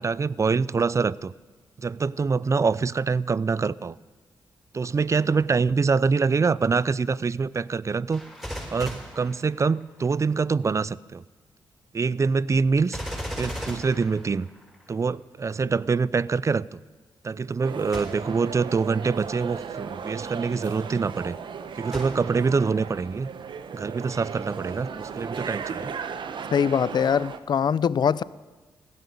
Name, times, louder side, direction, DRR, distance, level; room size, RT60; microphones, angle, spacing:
voice 1, 0.0-1.3 1.8-4.0 4.7-8.2 8.7-11.2 11.9-13.0 13.4-14.5 14.9-16.8 17.2-21.3 21.8-23.3 23.7-25.9, right 4 dB, 35° right, 21 dB, 0.5 m, -25 dB
Gunshot gunfire, 8.1-10.1 12.9-14.9 17.9-18.5 19.1-19.2 21.9-22.6 23.2-23.3, equal, 5° right, 7.2 m, -37 dB
sound 1, 17.6-27.4, right 6 dB, 65° right, 1.0 m, -36 dB
voice 2, 26.5-28.2, left 7 dB, 55° left, 19 dB, 0.5 m, -22 dB
16.0 x 13.0 x 6.8 m, 1.3 s
cardioid pair, 65°, 9 cm